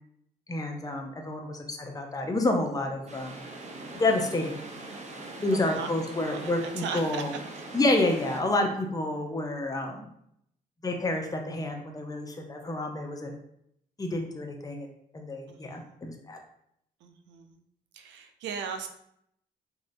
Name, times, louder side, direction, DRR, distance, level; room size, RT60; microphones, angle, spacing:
voice 1, 0.5-3.4 3.9-4.5 5.4-7.3 7.7-10.1 10.8-13.3 14.0-14.9 15.1-16.4, left 2 dB, 20° left, 3 dB, 0.6 m, -29 dB
sound 1, 3.1-8.4, right 2 dB, 40° right, 0.7 m, -42 dB
voice 2, 3.6-4.0 5.5-7.3 7.5-7.6 15.5-15.9 17.0-17.6 17.9-18.9, right 6 dB, 80° right, 6 dB, 0.4 m, -39 dB
3.0 x 2.7 x 2.6 m, 0.72 s
supercardioid pair, 50°, 18 cm